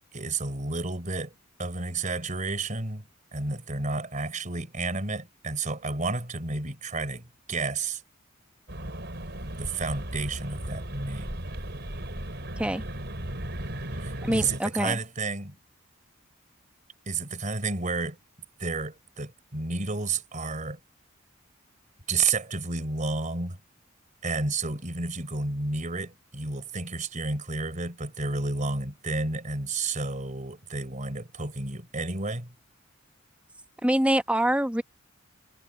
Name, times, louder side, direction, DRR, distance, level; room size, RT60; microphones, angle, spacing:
voice 1, 0.1-1.3 1.6-7.2 7.5-8.0 9.6-11.4 14.0-15.6 17.1-18.2 18.6-20.8 22.1-23.6 24.2-32.5, right 3 dB, 40° right, 3.8 m, -31 dB
sound 1, 8.7-14.6, right 1 dB, 55° right, 4.8 m, -36 dB
voice 2, 14.2-15.0 33.8-34.8, right 1 dB, 5° right, 1.2 m, -25 dB
head